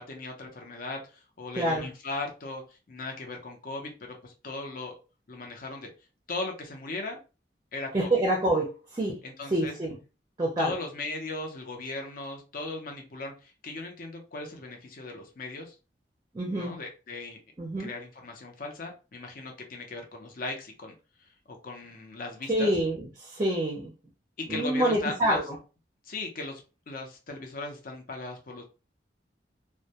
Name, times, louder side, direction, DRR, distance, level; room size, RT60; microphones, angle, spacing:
voice 1, 0.0-2.6 2.9-4.9 5.3-5.9 6.3-7.2 7.7-8.1 9.2-9.7 10.6-15.8 16.5-17.4 17.8-22.7 24.4-25.4 26.1-28.6, left 2 dB, 55° left, 0.6 m, -38 dB
voice 2, 1.5-1.9 7.9-9.2 9.5-10.0 10.4-10.7 16.3-16.8 17.6-17.9 22.5-23.9 24.5-25.6, right 1 dB, 20° right, 0.5 m, -27 dB
2.1 x 2.1 x 2.7 m
head